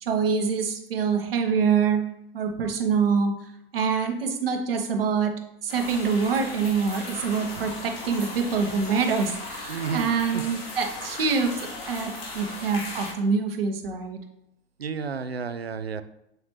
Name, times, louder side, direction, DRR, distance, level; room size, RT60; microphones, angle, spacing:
voice 1, 0.0-2.1 2.3-3.3 3.7-5.3 5.6-11.5 11.8-14.2, right 5 dB, 70° right, 4 dB, 1.1 m, -25 dB
sound 1, 5.7-13.1, left 2 dB, 80° left, 2.4 m, -37 dB
voice 2, 9.7-10.5 14.8-16.0, right 5 dB, 90° right, 12 dB, 0.5 m, -31 dB
7.8 x 4.1 x 3.1 m, 0.81 s
figure-of-eight pair, 85°, 30 cm